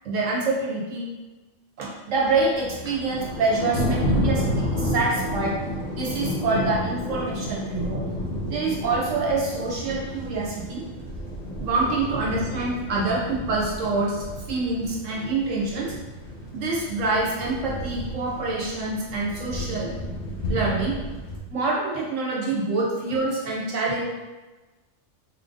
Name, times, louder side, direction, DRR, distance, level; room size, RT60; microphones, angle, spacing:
voice 1, 0.0-1.1 1.8-5.6 5.9-8.0 8.5-10.9 11.6-15.9 16.5-19.9 20.5-21.0 21.5-24.0, right 3 dB, 80° right, -3 dB, 1.2 m, -26 dB
Thunder, 2.2-21.4, left 1 dB, 80° left, 1.3 m, -31 dB
4.2 x 2.6 x 3.6 m, 1.2 s
omnidirectional pair, 1.3 m